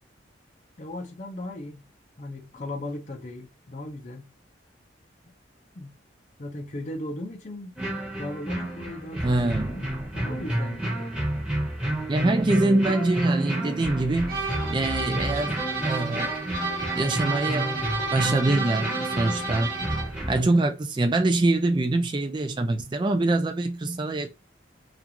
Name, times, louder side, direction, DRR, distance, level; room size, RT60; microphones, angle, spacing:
voice 1, 0.8-1.9 2.2-4.3 5.8-5.9 6.4-7.7 8.2-9.9 10.1-11.1, left 1 dB, 40° left, 0.5 m, -37 dB
sound 1, 7.8-20.4, right 1 dB, 5° right, 0.8 m, -31 dB
voice 2, 9.2-9.7 12.1-14.4 14.7-15.6 15.8-16.3 16.9-17.8 18.1-19.7 20.3-24.3, right 2 dB, 25° right, 0.3 m, -24 dB
sound 2, 14.3-20.2, right 3 dB, 50° right, 1.2 m, -31 dB
2.4 x 2.4 x 2.8 m
head